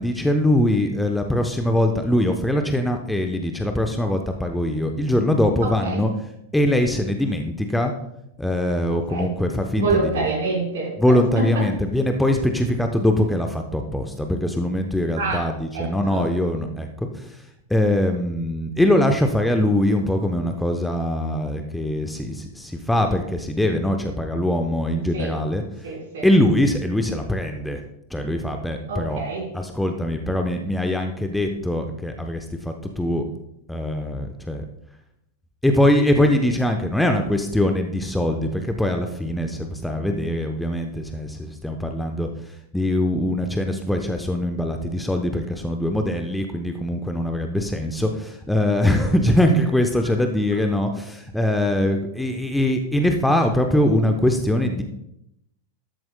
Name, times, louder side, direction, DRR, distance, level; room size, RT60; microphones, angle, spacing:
voice 1, 0.0-6.1 6.5-7.9 8.4-10.3 11.0-17.3 17.7-25.6 26.2-27.8 28.1-29.2 29.5-33.2 33.7-34.6 35.6-42.3 42.7-54.8, left 1 dB, 5° left, 5 dB, 0.9 m, -22 dB
voice 2, 5.6-6.0 9.1-9.3 9.8-10.9 11.3-11.4 15.1-15.4 15.7-16.2 25.1-25.3 25.8-26.3 28.9-29.4, right 3 dB, 60° right, -2 dB, 4.6 m, -26 dB
13.0 x 12.5 x 2.3 m, 0.81 s
figure-of-eight pair, 90°, 0 cm